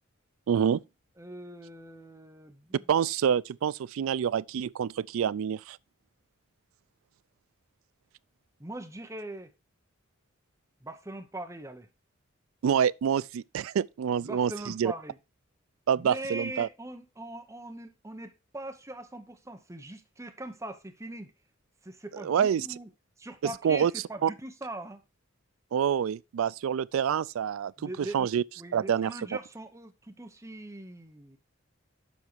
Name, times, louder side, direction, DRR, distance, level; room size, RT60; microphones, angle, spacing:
voice 1, 0.5-0.8 2.9-5.8 12.6-14.9 15.9-16.7 22.2-22.7 23.4-23.9 24.2-24.3 25.7-27.7 28.1-28.4 28.7-29.1, right 8 dB, 75° right, 0.3 m, -27 dB
voice 2, 1.2-2.9 8.6-9.5 10.8-11.9 14.2-15.2 16.0-21.3 21.8-22.9 23.2-25.0 27.8-28.3 28.6-31.4, right 1 dB, 15° right, 0.9 m, -41 dB
7.3 x 5.6 x 4.5 m
head